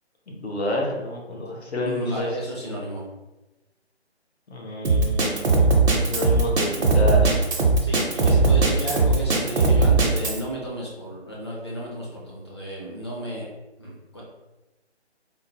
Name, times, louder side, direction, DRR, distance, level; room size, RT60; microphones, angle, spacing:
voice 1, 0.3-2.3 4.5-5.6 5.9-7.4, left 1 dB, 70° left, 0 dB, 1.0 m, -29 dB
voice 2, 1.8-3.0 7.8-13.5 13.8-14.2, equal, 25° left, -5 dB, 0.5 m, -33 dB
Drum kit, 4.8-10.4, right 3 dB, 70° right, 0.8 m, -19 dB
3.6 x 2.2 x 2.8 m, 1.1 s
figure-of-eight pair, 155°, 34 cm